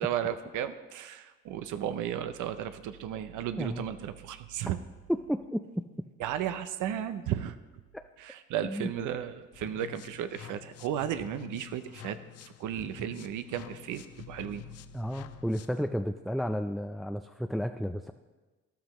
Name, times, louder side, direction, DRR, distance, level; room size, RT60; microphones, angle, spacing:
voice 1, 0.0-4.8 6.2-7.6 8.2-12.2 12.4-14.6, right 10 dB, 85° right, 10 dB, 0.6 m, -34 dB
voice 2, 5.1-5.6 7.9-8.0 8.6-8.9 14.9-18.1, equal, ahead, 7 dB, 0.3 m, -32 dB
sound 1, 9.5-15.9, left 12 dB, 55° left, 0.5 m, -48 dB
13.0 x 11.5 x 3.0 m, 1.2 s
cardioid pair, 90°, 30 cm